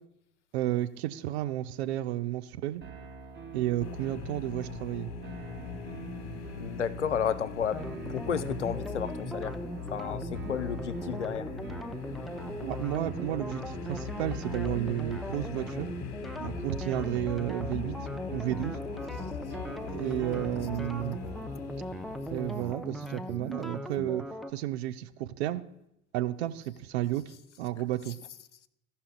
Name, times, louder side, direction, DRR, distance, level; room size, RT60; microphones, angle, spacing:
voice 1, 0.5-2.8 3.5-5.1 12.6-15.9 16.4-18.0 18.3-18.8 19.9-21.2 22.3-24.2 24.5-25.6 26.1-27.3 27.6-28.2, right 14 dB, 65° right, 0.7 m, -32 dB
sound 1, 2.8-22.1, right 5 dB, 30° right, 1.6 m, -48 dB
sound 2, 3.8-22.7, left 5 dB, 45° left, 1.2 m, -40 dB
voice 2, 6.6-9.6 9.9-11.5, left 8 dB, 85° left, 0.5 m, -32 dB
sound 3, 7.7-24.5, equal, ahead, 0.6 m, -39 dB
15.5 x 5.7 x 3.9 m
figure-of-eight pair, 60°, 34 cm